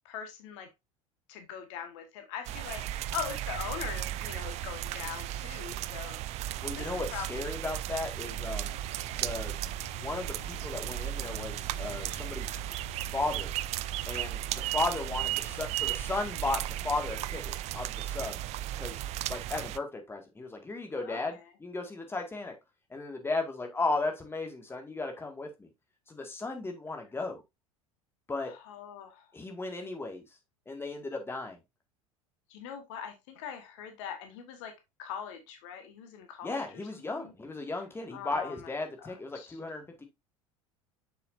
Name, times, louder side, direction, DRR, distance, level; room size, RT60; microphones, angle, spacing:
voice 1, 0.0-0.7 1.3-6.2 6.7-7.3 7.6-7.7 21.0-21.5 28.4-29.3 32.5-34.7 35.0-37.3 38.1-39.6, left 8 dB, 60° left, 1.5 m, -42 dB
sound 1, 2.5-19.8, right 14 dB, 40° right, 0.4 m, -35 dB
voice 2, 6.6-8.8 9.1-9.5 9.9-12.6 13.1-13.5 14.1-17.4 17.7-18.4 18.8-19.0 19.3-22.5 22.9-25.7 26.1-27.4 28.3-28.5 29.3-30.2 30.7-31.6 36.4-40.0, left 3 dB, 15° left, 1.9 m, -35 dB
sound 2, 8.1-17.2, left 6 dB, 85° left, 1.8 m, -51 dB
7.0 x 6.0 x 2.6 m
figure-of-eight pair, 75°, 18 cm